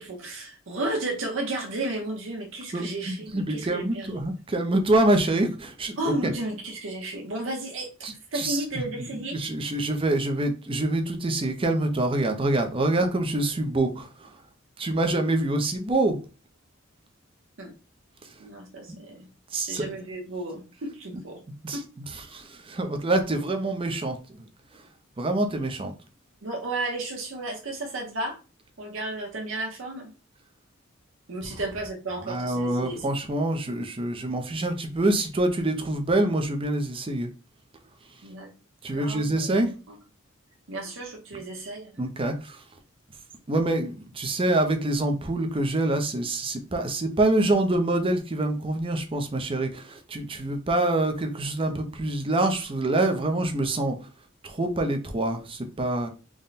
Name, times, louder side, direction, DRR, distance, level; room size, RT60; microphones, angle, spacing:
voice 1, 0.0-4.1 6.0-9.4 17.6-17.7 18.4-19.3 19.6-21.4 21.7-21.8 26.4-28.4 28.8-30.1 31.3-33.1 38.2-38.5 38.9-39.7 40.7-41.9, right 2 dB, 70° right, 0.8 m, -33 dB
voice 2, 2.7-6.3 8.0-14.3 14.8-16.2 18.2-18.3 19.5-19.9 21.6-24.4 24.7-24.8 25.2-25.9 32.2-37.3 38.8-39.7 42.0-42.6 43.5-54.0 54.4-56.1, right 2 dB, 25° right, 0.5 m, -26 dB
3.6 x 2.1 x 4.0 m
head